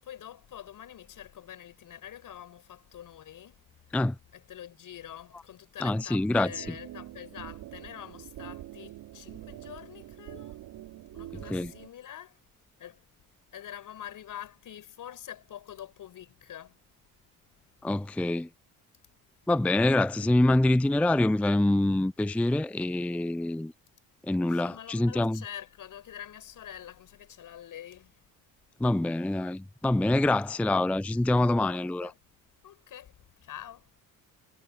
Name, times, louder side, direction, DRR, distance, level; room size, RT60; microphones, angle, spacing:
voice 1, 0.0-3.6 4.3-10.6 11.1-12.4 12.8-13.0 13.5-16.8 24.5-28.1 31.5-32.1 32.6-33.1 33.4-33.9, left 10 dB, 65° left, 6.3 m, -45 dB
voice 2, 5.8-6.8 11.3-11.7 17.8-18.5 19.5-23.7 24.2-25.4 28.8-32.1, left 2 dB, 5° left, 0.4 m, -25 dB
sound 1, 6.5-11.9, right 14 dB, 80° right, 5.7 m, -45 dB
cardioid pair, 85°, 35 cm